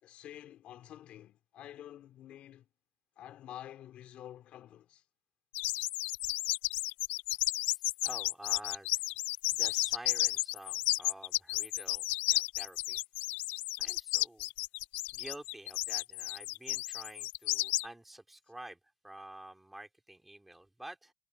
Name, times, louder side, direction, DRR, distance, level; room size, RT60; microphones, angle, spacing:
voice 1, 0.0-2.7 3.2-5.0, left 11 dB, 40° left, 2.6 m, -49 dB
sound 1, 5.5-17.8, left 21 dB, 60° left, 0.3 m, -32 dB
voice 2, 7.6-9.0 9.5-13.0 13.8-14.5 15.1-18.8 19.0-21.1, right 1 dB, 5° right, 3.8 m, -49 dB
cardioid pair, 150°, 3 cm